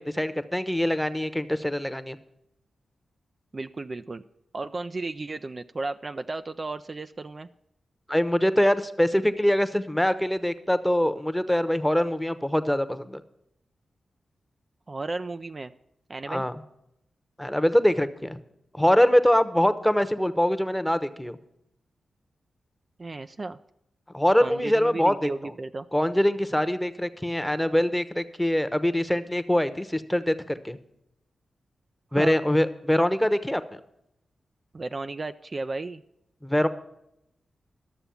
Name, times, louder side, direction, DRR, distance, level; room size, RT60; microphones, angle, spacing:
voice 1, 0.0-2.2 8.1-13.2 16.3-16.5 17.4-18.4 18.7-21.4 24.1-25.3 25.9-30.8 32.1-33.8 36.4-36.7, equal, 5° left, 12 dB, 0.9 m, -23 dB
voice 2, 3.5-4.2 4.5-7.5 14.9-15.7 16.1-16.4 23.0-23.6 24.4-25.9 32.1-32.4 34.7-36.0, right 3 dB, 45° right, 9 dB, 0.4 m, -34 dB
11.5 x 7.0 x 7.0 m, 0.81 s
cardioid pair, 45°, 0 cm